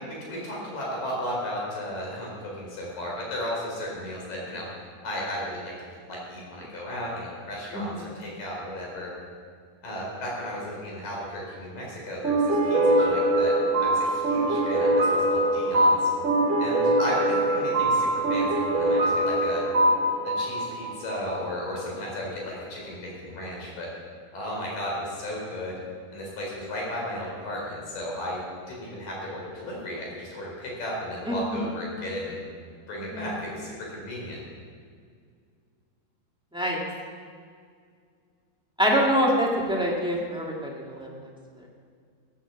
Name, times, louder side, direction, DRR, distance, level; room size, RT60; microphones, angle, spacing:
voice 1, 0.1-4.7 5.0-5.7 6.1-9.1 9.8-13.5 13.8-16.1 16.6-19.6 20.2-23.9 24.3-25.8 26.1-28.4 28.7-32.4 32.9-34.4, equal, 55° left, -3 dB, 5.6 m, -34 dB
sound 1, 12.2-21.5, right 1 dB, 70° right, 0.7 m, -23 dB
voice 2, 38.8-41.1, equal, 5° right, -3 dB, 0.8 m, -25 dB
16.5 x 10.0 x 7.3 m, 2.1 s
omnidirectional pair, 4.6 m